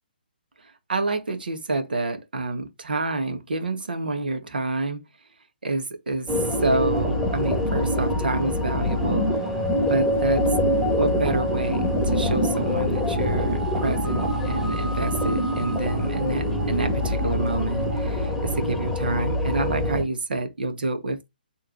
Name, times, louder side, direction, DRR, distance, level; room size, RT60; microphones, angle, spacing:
voice 1, 0.6-5.0 5.6-9.3 9.8-10.4 10.7-21.3, right 2 dB, 65° right, 1.9 m, -28 dB
sound 1, 6.3-20.0, left 1 dB, ahead, 1.8 m, -24 dB
7.6 x 3.9 x 5.0 m
figure-of-eight pair, 140°, 5 cm